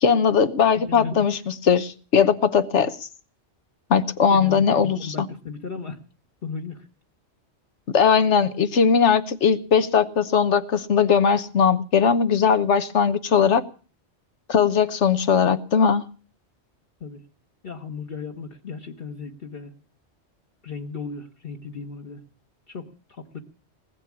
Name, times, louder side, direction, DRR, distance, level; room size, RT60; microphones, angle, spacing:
voice 1, 0.0-3.0 3.9-5.3 7.9-13.6 14.5-16.0, left 6 dB, 90° left, 1.3 m, -19 dB
voice 2, 0.8-1.2 4.3-6.0 6.4-6.9 17.0-17.2 17.6-19.7 20.6-22.2 22.7-23.4, left 5 dB, 55° left, 1.5 m, -35 dB
19.5 x 7.2 x 9.7 m
omnidirectional pair, 1.2 m